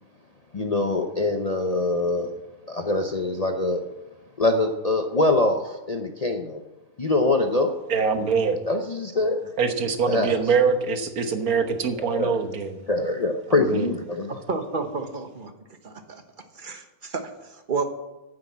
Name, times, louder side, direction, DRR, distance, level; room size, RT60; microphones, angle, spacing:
voice 1, 0.5-2.3 2.7-3.8 4.4-6.6 7.0-7.7 8.7-9.4 10.1-10.3 12.0-12.4 12.9-14.3, left 2 dB, 35° left, 4 dB, 0.7 m, -24 dB
voice 2, 7.9-8.6 9.6-12.8 13.5-13.9, right 5 dB, 80° right, 7 dB, 1.6 m, -24 dB
voice 3, 14.3-15.5 15.8-16.2 16.5-17.8, right 4 dB, 35° right, 6 dB, 1.3 m, -31 dB
10.0 x 8.9 x 7.4 m, 1.0 s
omnidirectional pair, 1.5 m